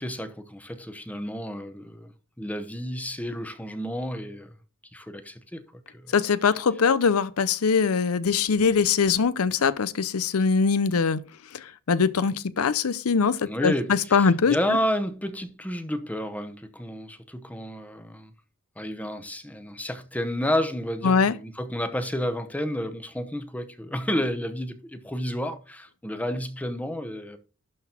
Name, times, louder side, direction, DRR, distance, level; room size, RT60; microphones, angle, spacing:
voice 1, 0.0-4.5 4.9-6.1 13.5-18.3 18.8-27.4, equal, 5° left, 0.8 m, -31 dB
voice 2, 6.1-11.2 11.5-14.5 21.0-21.3, left 5 dB, 85° left, 0.6 m, -22 dB
11.5 x 4.0 x 4.4 m
head